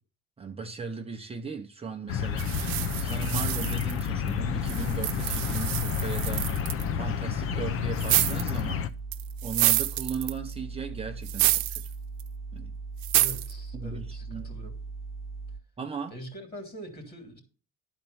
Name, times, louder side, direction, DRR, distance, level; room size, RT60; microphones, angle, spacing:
voice 1, 0.4-6.7 6.9-8.9 9.4-11.8 12.5-12.7 13.7-14.5 15.8-16.1, right 5 dB, 20° right, 0.8 m, -37 dB
sound 1, 2.1-8.9, left 9 dB, 50° left, 0.7 m, -30 dB
sound 2, 2.2-15.6, right 4 dB, ahead, 1.1 m, -39 dB
sound 3, 2.4-4.3 4.7-6.8 8.0-8.6 9.1-10.5 11.2-11.9 12.2-12.3 13.0-13.5, right 17 dB, 75° right, 0.8 m, -28 dB
voice 2, 13.1-14.7 16.1-17.4, equal, 35° left, 3.2 m, -43 dB
11.5 x 4.4 x 7.0 m
cardioid pair, 130°, 29 cm